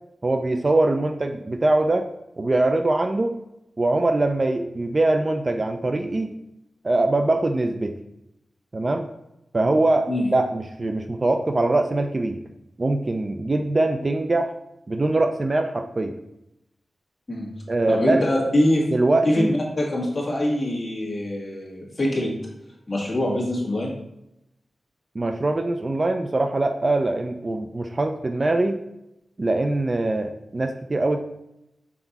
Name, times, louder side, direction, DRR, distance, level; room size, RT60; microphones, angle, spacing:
voice 1, 0.2-2.1 2.4-3.4 3.8-6.3 6.8-7.9 8.7-9.1 9.5-12.4 12.8-14.5 14.9-16.1 17.7-18.2 18.9-19.5 25.2-28.8 29.4-31.2, right 2 dB, 30° right, 6 dB, 0.4 m, -22 dB
voice 2, 17.9-18.9 19.2-22.3 22.9-23.9, left 1 dB, 25° left, -3 dB, 1.8 m, -23 dB
6.0 x 4.4 x 4.0 m, 0.86 s
wide cardioid pair, 135°, 0 cm